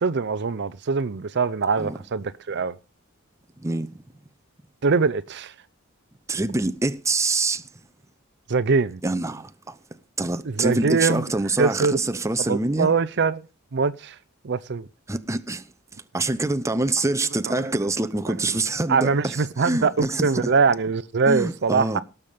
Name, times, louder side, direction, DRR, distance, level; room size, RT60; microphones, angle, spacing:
voice 1, 0.0-2.7 4.8-5.5 8.5-9.0 10.4-11.3 11.6-12.0 12.5-13.4 13.7-14.2 14.4-14.9 17.5-17.6 18.3-18.4 18.9-22.0, right 4 dB, 50° right, 0.6 m, -23 dB
voice 2, 6.3-7.6 9.0-9.8 10.2-12.9 15.1-15.6 16.1-20.5 21.3-22.0, right 2 dB, 15° right, 0.7 m, -25 dB
18.0 x 6.9 x 5.0 m
head